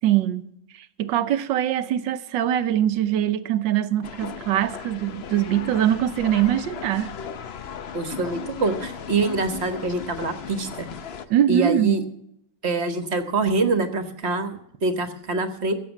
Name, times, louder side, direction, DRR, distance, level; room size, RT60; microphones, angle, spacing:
voice 1, 0.0-7.1 11.3-12.0, right 11 dB, 75° right, 1.5 m, -23 dB
sound 1, 4.0-11.3, left 7 dB, 55° left, 0.7 m, -37 dB
voice 2, 7.9-10.9 11.5-12.0 12.6-15.7, right 3 dB, 40° right, 1.5 m, -25 dB
14.5 x 8.2 x 7.2 m
omnidirectional pair, 2.0 m